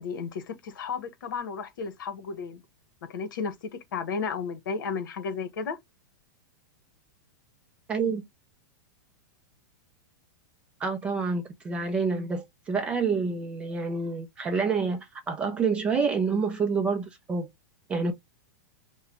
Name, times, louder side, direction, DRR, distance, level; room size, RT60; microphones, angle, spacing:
voice 1, 0.0-2.6 3.0-5.8, left 5 dB, 75° left, 1.0 m, -33 dB
voice 2, 7.9-8.2 10.8-17.5 17.9-18.1, right 4 dB, 10° right, 0.4 m, -28 dB
4.8 x 2.2 x 2.9 m
supercardioid pair, 175°, 11 cm